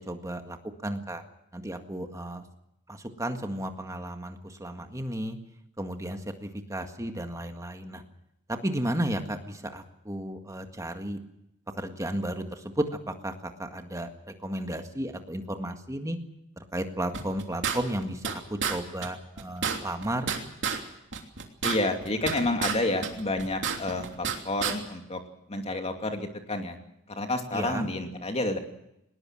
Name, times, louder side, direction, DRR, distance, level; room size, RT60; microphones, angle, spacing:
voice 1, 0.1-0.6 0.8-1.2 1.5-2.4 2.9-5.4 5.8-8.0 8.5-11.2 11.8-12.8 13.2-13.3 13.6-14.1 14.4-16.2 16.7-18.4 18.7-20.3 27.5-27.9, right 1 dB, 15° right, 6 dB, 1.8 m, -33 dB
sound 1, 17.1-18.3 18.6-18.8 19.0-19.1 19.4-20.8 21.1-22.8 23.0-24.4 24.6-24.7, right 6 dB, 55° right, 3.1 m, -30 dB
voice 2, 21.6-25.2 25.5-26.8 27.1-28.6, left 2 dB, 30° left, 5 dB, 2.6 m, -29 dB
20.0 x 20.0 x 7.7 m, 0.82 s
head